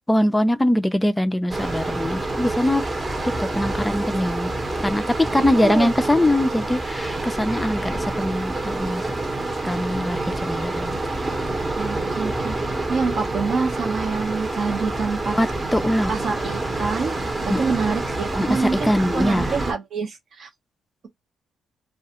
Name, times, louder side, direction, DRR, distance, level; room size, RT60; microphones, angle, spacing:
voice 1, 0.1-2.8 3.2-9.0 9.6-11.0 15.3-16.1 17.5-17.6 18.4-19.5, left 1 dB, 10° left, 0.4 m, -22 dB
sound 1, 1.5-19.7, right 2 dB, 20° right, 0.8 m, -27 dB
voice 2, 5.4-5.9 11.8-15.4 16.1-17.2 17.5-20.5, right 4 dB, 60° right, 0.8 m, -26 dB
2.4 x 2.3 x 2.8 m
cardioid pair, 90°, 0 cm